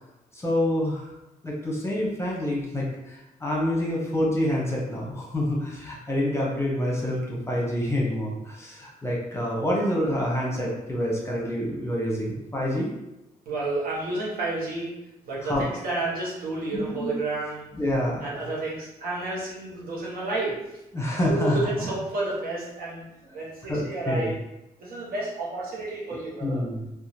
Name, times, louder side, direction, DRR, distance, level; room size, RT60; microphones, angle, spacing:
voice 1, 0.3-1.1 1.4-2.9 3.4-12.9 15.4-15.6 16.7-17.1 17.7-18.2 20.9-21.9 23.3-23.4 23.7-24.3 26.4-26.8, left 1 dB, 15° left, -4 dB, 0.9 m, -27 dB
voice 2, 13.5-14.9 15.2-17.7 18.2-20.8 21.3-23.1 23.3-24.4 24.8-26.6, right 2 dB, 75° right, -5 dB, 1.0 m, -31 dB
2.8 x 2.3 x 2.8 m, 0.92 s
cardioid pair, 80°, 15 cm